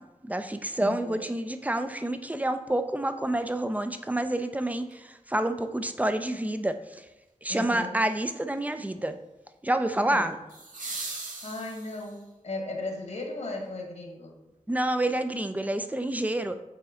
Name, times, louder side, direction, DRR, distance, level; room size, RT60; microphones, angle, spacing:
voice 1, 0.0-7.0 7.4-9.2 9.6-10.4 14.7-16.6, right 1 dB, 10° right, 9 dB, 0.5 m, -28 dB
voice 2, 0.8-1.2 7.5-8.0 10.0-10.3 11.4-14.3, left 2 dB, 60° left, 1 dB, 1.4 m, -36 dB
sound 1, 4.9-5.0 10.5-12.3 14.5-14.6, right 3 dB, 85° right, 1.4 m, -39 dB
7.7 x 4.0 x 3.7 m, 1.0 s
wide cardioid pair, 65°, 13 cm